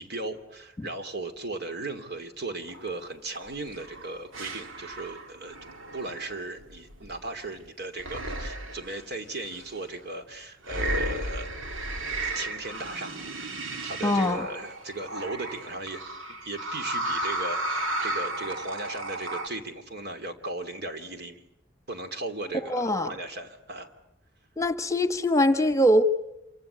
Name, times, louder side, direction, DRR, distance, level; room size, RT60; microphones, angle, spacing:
voice 1, 0.0-5.6 5.9-11.9 12.3-13.5 13.8-16.0 16.4-21.4 21.9-23.9, right 2 dB, 55° right, 7 dB, 2.8 m, -37 dB
sound 1, 2.7-3.0 3.3-7.6 8.0-9.0 9.5-9.7 10.6-19.5, right 1 dB, 85° right, 2.2 m, -34 dB
voice 2, 14.0-14.5 22.7-23.1 24.6-26.0, equal, 15° left, 10 dB, 1.3 m, -23 dB
27.5 x 25.0 x 8.1 m, 0.86 s
head